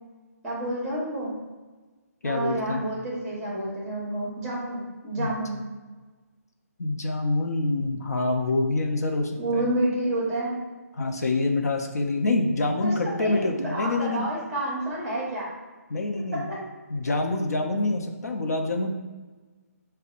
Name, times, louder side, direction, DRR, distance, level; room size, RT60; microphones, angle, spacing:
voice 1, 0.4-1.3 2.2-5.6 9.4-10.5 12.8-15.5 16.3-16.4, right 1 dB, 10° right, -5 dB, 1.0 m, -29 dB
voice 2, 2.2-2.8 5.2-5.4 6.8-9.7 11.0-14.3 15.9-16.5 16.9-18.9, left 2 dB, 75° left, 3 dB, 0.5 m, -26 dB
5.1 x 2.2 x 2.4 m, 1.3 s
hypercardioid pair, 160°, 9 cm